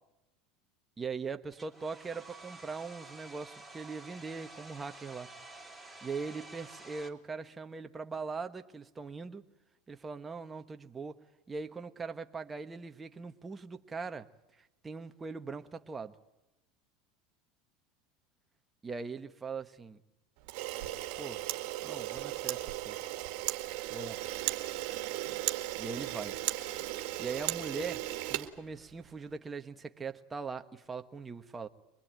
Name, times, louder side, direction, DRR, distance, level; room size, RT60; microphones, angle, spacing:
voice 1, 1.0-5.3 6.0-9.4 9.9-11.2 11.5-14.3 14.6-16.1 18.8-20.0 21.2-21.4 21.8-23.0 23.9-24.2 25.8-26.3 27.2-28.0 28.3-31.7, right 4 dB, 20° right, 7 dB, 1.4 m, -41 dB
Domestic sounds home sounds, 1.5-7.1, right 2 dB, ahead, 3.3 m, -50 dB
Camera, 20.4-29.2, right 16 dB, 65° right, 1.9 m, -36 dB
24.5 x 20.5 x 9.0 m, 0.93 s
supercardioid pair, 110°, 0 cm